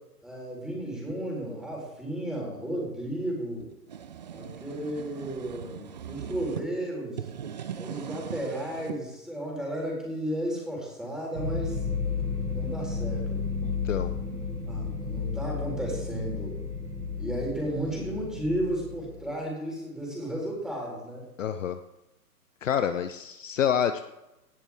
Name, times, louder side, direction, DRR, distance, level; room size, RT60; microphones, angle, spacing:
voice 1, 0.2-3.7 4.3-7.2 7.8-11.8 12.5-13.4 14.7-16.6 17.2-21.3, right 1 dB, ahead, -2 dB, 4.1 m, -33 dB
sound 1, 3.6-6.7 7.1-9.0, right 8 dB, 30° right, 0.5 m, -39 dB
sound 2, 11.3-19.3, left 4 dB, 70° right, 5.2 m, -32 dB
voice 2, 13.6-14.1 21.4-21.8 22.6-24.0, left 9 dB, 55° left, 10 dB, 0.8 m, -28 dB
18.0 x 10.5 x 3.6 m, 0.94 s
figure-of-eight pair, 130°, 47 cm